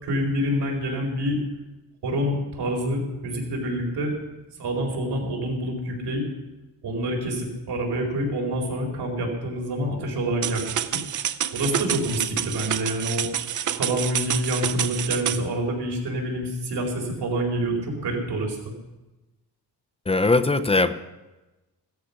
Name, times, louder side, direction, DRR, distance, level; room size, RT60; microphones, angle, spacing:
voice 1, 0.0-1.4 2.0-4.1 4.6-6.2 6.8-10.8 11.5-13.3 13.7-18.7, right 1 dB, 80° right, 0 dB, 4.5 m, -27 dB
sound 1, 10.4-15.4, right 9 dB, 50° right, 0.6 m, -28 dB
voice 2, 20.1-20.9, left 3 dB, 15° left, 10 dB, 0.6 m, -20 dB
16.0 x 13.5 x 5.8 m, 1.1 s
wide cardioid pair, 155°, 40 cm